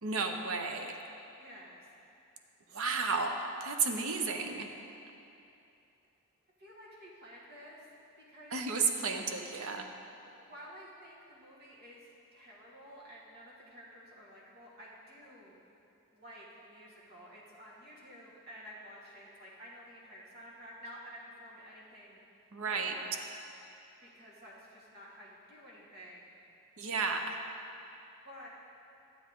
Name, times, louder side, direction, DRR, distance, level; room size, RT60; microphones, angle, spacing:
voice 1, 0.0-1.0 2.7-3.3 3.6-4.7 8.5-9.9 22.5-22.9 26.8-27.4, right 4 dB, 65° right, 4 dB, 0.8 m, -32 dB
voice 2, 1.4-1.9 6.6-7.9 8.2-8.6 10.2-15.6 16.1-22.2 22.6-23.0 24.0-26.3 28.2-28.5, equal, 45° right, -5 dB, 1.8 m, -51 dB
12.0 x 7.9 x 3.7 m, 2.7 s
head